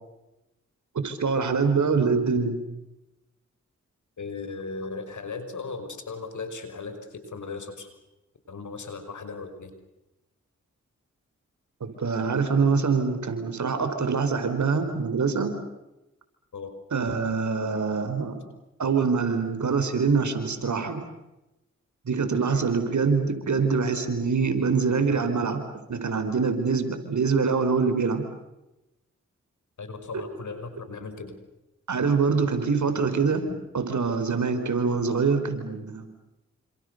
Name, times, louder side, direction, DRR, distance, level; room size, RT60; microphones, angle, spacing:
voice 1, 1.0-2.6 11.8-15.5 16.9-18.4 18.8-21.0 22.0-25.6 25.9-28.2 31.9-33.4 33.7-36.1, right 5 dB, 70° right, 8 dB, 5.0 m, -24 dB
voice 2, 4.2-7.9 8.5-9.8 16.5-16.7 29.8-31.4 33.5-33.6 35.7-35.8, left 4 dB, 70° left, 8 dB, 5.7 m, -37 dB
29.0 x 27.0 x 6.8 m, 0.96 s
cardioid pair, 50°, 30 cm